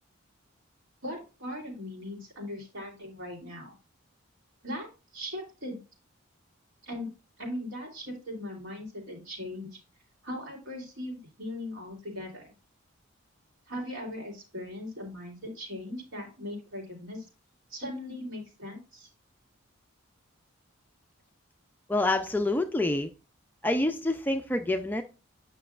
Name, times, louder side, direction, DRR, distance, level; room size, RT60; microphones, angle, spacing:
voice 1, 1.0-3.7 4.6-5.8 6.8-7.1 7.4-9.8 10.2-12.5 13.7-17.3 17.7-19.1, left 1 dB, 65° right, -1 dB, 3.0 m, -39 dB
voice 2, 21.9-23.1 23.6-25.0, left 2 dB, 10° left, 6 dB, 0.3 m, -27 dB
8.9 x 5.9 x 2.4 m, 0.32 s
head